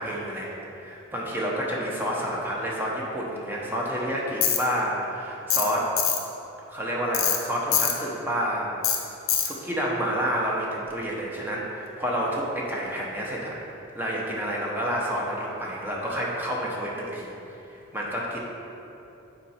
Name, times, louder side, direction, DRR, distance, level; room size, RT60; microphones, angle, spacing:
voice 1, 0.0-5.9 6.7-8.7 9.1-17.3 17.7-18.4, equal, 10° right, -4 dB, 0.9 m, -29 dB
Tools, 4.4-4.6 5.5-5.7 6.0-6.2 7.1-7.4 7.7-7.9 8.8-9.0 9.3-9.5, left 9 dB, 75° left, 0.8 m, -23 dB
7.3 x 4.2 x 5.6 m, 2.9 s
head